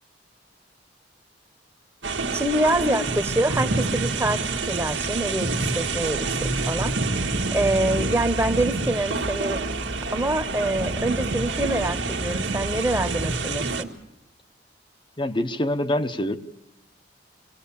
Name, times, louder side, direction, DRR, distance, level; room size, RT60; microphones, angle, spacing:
sound 1, 2.0-13.8, right 3 dB, 80° right, 1.7 m, -27 dB
voice 1, 2.3-9.8 10.1-13.9, right 1 dB, 15° right, 8 dB, 1.2 m, -26 dB
voice 2, 15.2-16.4, left 1 dB, 25° left, 10 dB, 1.0 m, -25 dB
25.0 x 18.5 x 7.1 m, 0.83 s
head